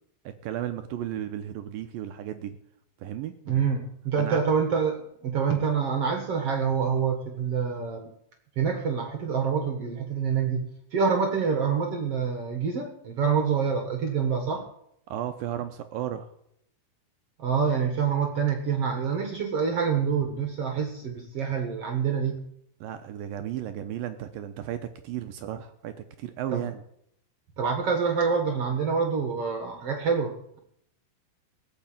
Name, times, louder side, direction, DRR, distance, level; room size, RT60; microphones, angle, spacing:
voice 1, 0.2-2.6 3.0-3.3 4.2-4.4 15.1-16.3 22.8-26.8, right 11 dB, 75° right, 8 dB, 2.2 m, -34 dB
voice 2, 3.5-8.1 8.6-14.6 17.4-22.4 26.5-26.6 27.6-30.6, right 6 dB, 55° right, 5 dB, 1.9 m, -26 dB
17.5 x 7.0 x 8.8 m, 0.74 s
omnidirectional pair, 4.6 m